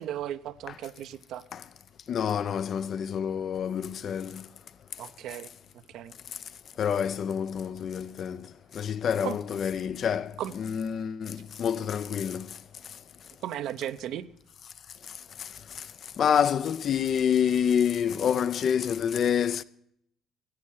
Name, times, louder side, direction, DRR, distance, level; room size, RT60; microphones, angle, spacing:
voice 1, 0.0-1.4 5.0-5.5 5.9-6.1 9.2-9.4 10.4-10.5 13.4-14.3, right 11 dB, 70° right, 0.7 m, -35 dB
voice 2, 2.1-4.4 6.8-8.5 8.7-12.5 16.2-19.6, left 8 dB, 50° left, 0.5 m, -27 dB
15.5 x 8.6 x 6.3 m
cardioid pair, 105°, 0 cm